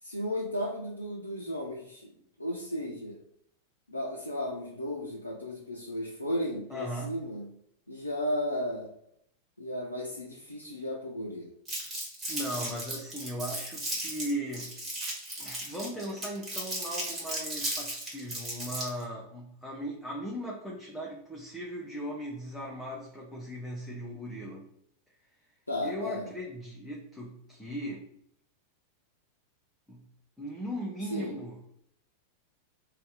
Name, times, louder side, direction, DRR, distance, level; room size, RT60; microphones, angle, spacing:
voice 1, 0.0-3.2 3.9-7.5 7.9-8.9 9.6-11.5 25.7-26.3 31.1-31.4, left 1 dB, 80° left, -3 dB, 0.4 m, -34 dB
voice 2, 6.7-7.2 12.3-14.7 15.4-24.7 25.8-28.1 29.9-30.1 30.4-31.7, equal, ahead, -4 dB, 0.5 m, -38 dB
Crumpling crinkling, 11.7-19.0, right 1 dB, 20° right, 1.4 m, -35 dB
2.6 x 2.2 x 3.3 m, 0.72 s
figure-of-eight pair, 90°, 0 cm